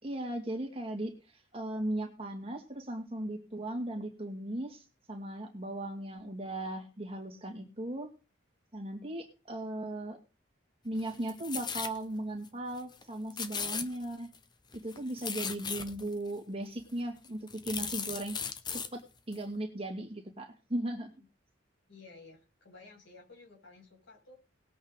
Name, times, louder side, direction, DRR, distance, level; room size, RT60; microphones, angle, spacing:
voice 1, 0.0-8.1 8.7-10.2 10.8-14.3 14.8-18.4 18.7-21.1, right 1 dB, 30° right, 3 dB, 2.5 m, -37 dB
sound 1, 11.0-12.0 12.4-12.5 12.8-13.0 13.3-14.4 14.7-16.1 16.8-16.9 17.2-18.9 19.3-19.4, left 6 dB, 20° left, 0.8 m, -37 dB
voice 2, 21.9-24.3, left 3 dB, 75° left, -1 dB, 6.9 m, -54 dB
19.5 x 8.4 x 4.1 m, 0.33 s
head